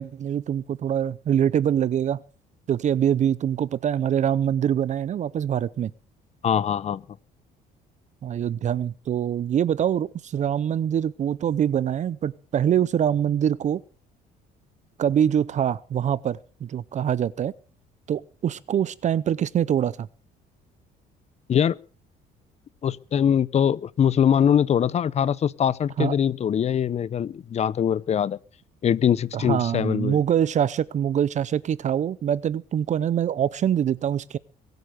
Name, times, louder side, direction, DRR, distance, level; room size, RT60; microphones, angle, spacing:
voice 1, 0.0-2.2 2.7-5.9 8.2-13.8 15.0-17.5 18.1-20.1 26.0-26.2 29.3-34.4, right 9 dB, 45° right, 0.6 m, -24 dB
voice 2, 6.4-7.0 21.5-21.8 22.8-28.4 28.8-30.2, left 8 dB, 40° left, 0.7 m, -22 dB
22.5 x 8.0 x 6.7 m
cardioid pair, 110°, 17 cm